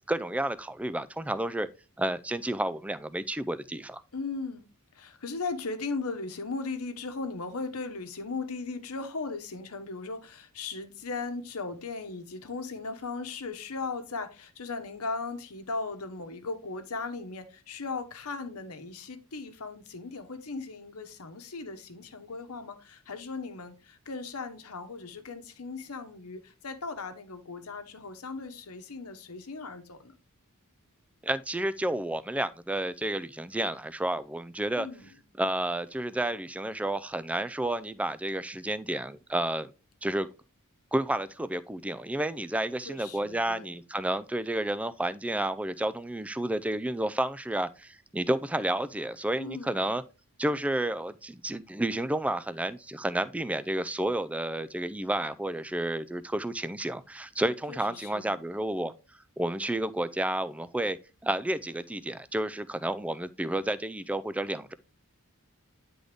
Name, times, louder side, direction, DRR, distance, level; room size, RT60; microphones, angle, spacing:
voice 1, 0.1-1.7 2.0-4.0 31.2-34.9 35.4-39.7 40.0-40.3 40.9-50.0 50.4-58.9 59.4-61.0 61.2-64.7, right 1 dB, 5° right, 0.3 m, -31 dB
voice 2, 4.1-4.6 4.9-30.1 34.8-35.2 42.9-43.7 49.4-49.8 57.7-58.4, left 3 dB, 75° left, 1.0 m, -37 dB
9.6 x 3.9 x 3.4 m
head